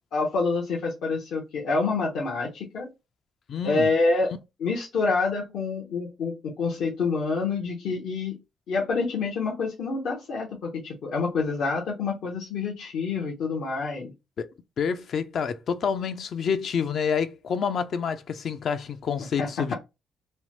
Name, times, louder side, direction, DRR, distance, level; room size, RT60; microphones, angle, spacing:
voice 1, 0.1-2.9 3.6-8.4 8.7-14.1 19.4-19.8, left 4 dB, 75° left, 0.8 m, -27 dB
voice 2, 3.5-3.9 14.4-14.5 14.8-19.7, left 6 dB, 60° left, 0.4 m, -28 dB
3.1 x 2.1 x 3.0 m
cardioid pair, 90°, 0 cm